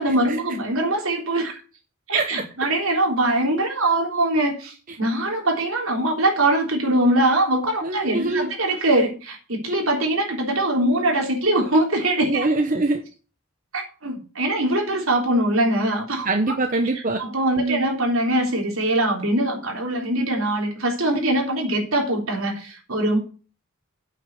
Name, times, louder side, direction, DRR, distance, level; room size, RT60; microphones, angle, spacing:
voice 1, 0.0-1.6 2.1-12.5 13.7-16.6 17.2-23.2, right 1 dB, 70° right, 1 dB, 3.6 m, -22 dB
voice 2, 7.8-8.5 12.3-13.0 16.2-17.2 17.6-17.9, right 2 dB, 40° right, 5 dB, 1.0 m, -23 dB
8.4 x 6.4 x 7.7 m, 0.36 s
head